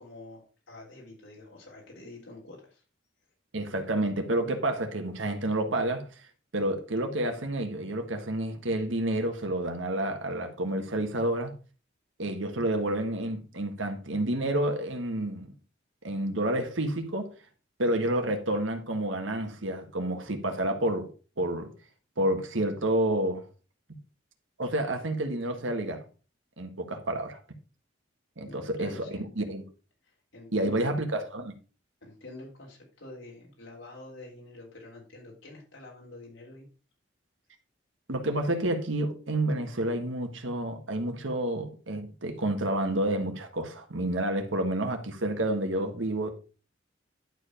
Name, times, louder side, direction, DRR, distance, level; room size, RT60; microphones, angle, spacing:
voice 1, 0.0-2.8 28.4-29.4 30.0-30.8 32.0-36.7, left 2 dB, 90° left, 3.5 m, -47 dB
voice 2, 3.5-6.1 6.5-11.5 12.2-15.5 16.0-17.3 17.8-21.1 21.4-21.7 22.2-23.4 24.6-26.0 26.6-27.4 28.4-29.6 30.5-31.5 38.1-46.3, right 1 dB, 85° right, 1.7 m, -29 dB
11.0 x 4.8 x 5.1 m
head